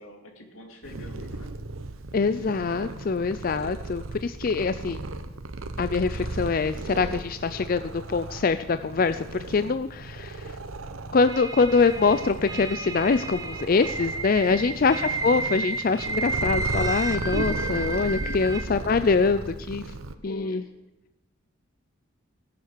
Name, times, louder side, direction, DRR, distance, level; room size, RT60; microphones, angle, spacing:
voice 1, 0.0-1.5 14.5-14.9 18.2-18.6 20.2-20.7, left 1 dB, 85° left, 3 dB, 2.9 m, -45 dB
Purr, 0.8-20.1, right 2 dB, 85° right, 1.0 m, -36 dB
voice 2, 2.1-5.0 5.8-7.8 8.1-10.6 11.1-19.8 20.2-20.6, left 4 dB, 45° left, 11 dB, 0.4 m, -24 dB
sound 1, 11.3-18.6, right 3 dB, 15° right, 0.9 m, -32 dB
17.0 x 10.5 x 6.6 m, 1.0 s
head